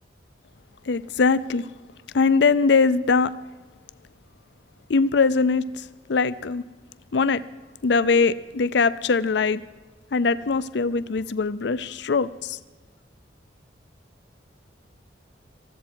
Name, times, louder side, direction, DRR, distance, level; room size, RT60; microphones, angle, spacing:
voice 1, 0.9-1.7 2.1-3.4 4.9-6.6 7.1-7.4 7.8-9.6 10.1-12.6, left 4 dB, 70° left, 0.5 m, -21 dB
19.5 x 14.5 x 4.5 m
head